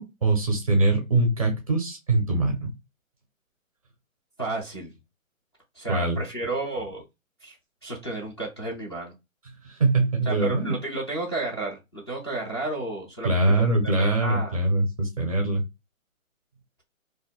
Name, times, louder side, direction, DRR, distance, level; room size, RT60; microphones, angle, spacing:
voice 1, 0.0-2.7 5.9-6.2 9.6-10.7 13.2-15.6, right 2 dB, 25° right, 0.5 m, -23 dB
voice 2, 4.4-4.9 5.8-7.0 7.4-7.5 7.8-9.1 10.3-13.7 14.0-14.6, right 2 dB, 20° left, 0.5 m, -32 dB
2.5 x 2.0 x 3.8 m
hypercardioid pair, 150°, 41 cm